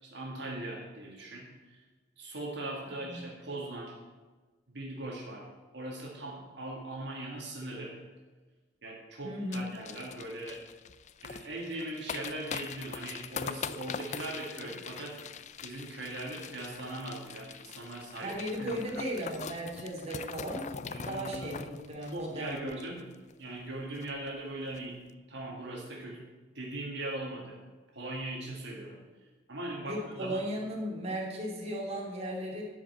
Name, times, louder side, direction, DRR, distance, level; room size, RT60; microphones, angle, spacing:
voice 1, 0.0-1.8 2.2-3.9 4.7-5.5 5.7-7.9 8.8-10.6 11.2-15.2 15.6-19.0 20.9-21.5 22.1-23.1 23.4-25.0 25.3-26.2 26.6-27.6 27.9-29.0 29.5-30.4, right 1 dB, 60° right, -1 dB, 1.9 m, -40 dB
voice 2, 9.2-9.7 18.2-22.8 29.8-32.6, equal, 35° right, -2 dB, 2.4 m, -36 dB
sound 1, 9.5-23.3 23.6-23.7 23.9-24.3 24.6-24.8, left 6 dB, 35° left, 0.4 m, -43 dB
12.0 x 5.2 x 8.1 m, 1.3 s
head